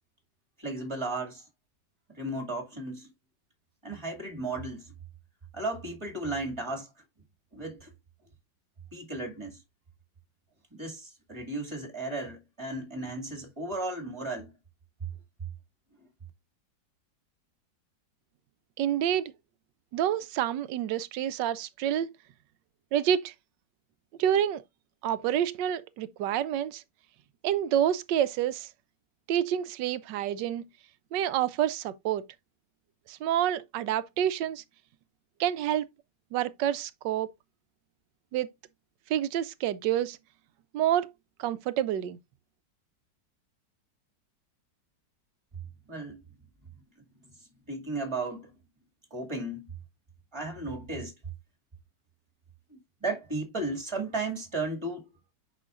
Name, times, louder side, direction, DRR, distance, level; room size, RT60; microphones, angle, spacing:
voice 1, 0.6-1.5 2.1-3.1 3.8-4.9 5.5-6.9 7.5-7.9 8.9-9.6 10.7-14.5 16.0-16.1 45.9-46.2 47.4-48.6 49.1-49.7 50.3-51.1 52.7-55.1, right 2 dB, 15° right, 2.2 m, -35 dB
voice 2, 18.8-19.2 19.9-22.1 22.9-23.3 24.2-24.6 25.0-26.8 27.4-28.7 29.3-30.7 31.1-32.2 33.1-34.6 35.4-35.8 36.3-37.3 38.3-38.5 39.1-40.2 40.7-41.1 41.4-42.2, right 10 dB, 85° right, 1.3 m, -28 dB
8.4 x 5.8 x 2.5 m
omnidirectional pair, 1.9 m